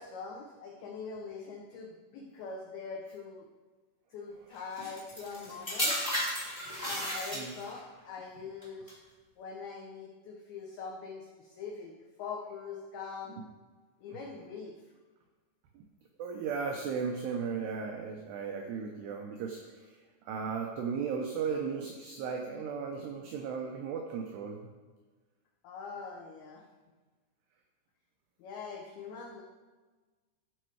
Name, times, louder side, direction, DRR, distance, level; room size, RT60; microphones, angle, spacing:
voice 1, 0.0-3.5 4.1-6.0 6.9-9.0 9.4-11.9 12.2-13.4 14.0-14.7 25.6-26.6 28.4-29.4, left 5 dB, 85° left, -1 dB, 2.2 m, -43 dB
sound 1, 4.8-7.8 8.6-8.9, equal, 25° left, 0.6 m, -34 dB
voice 2, 16.2-24.7, right 6 dB, 80° right, 2 dB, 2.4 m, -36 dB
14.5 x 5.0 x 4.7 m, 1.3 s
omnidirectional pair, 5.7 m